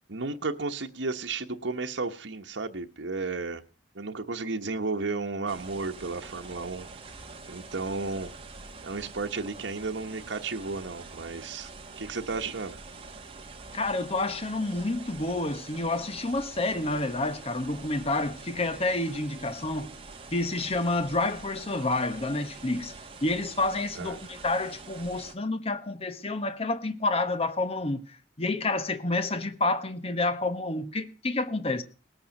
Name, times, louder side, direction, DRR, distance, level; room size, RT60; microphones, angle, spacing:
voice 1, 0.1-3.6 3.9-6.9 7.5-8.3 8.8-11.7 12.0-12.8 24.0-24.2, right 3 dB, 85° right, 1.2 m, -33 dB
sound 1, 5.5-25.3, right 3 dB, 30° right, 1.6 m, -45 dB
voice 2, 13.7-19.9 20.3-22.9 23.2-31.8, left 2 dB, 35° left, 1.2 m, -29 dB
19.0 x 8.9 x 6.5 m
head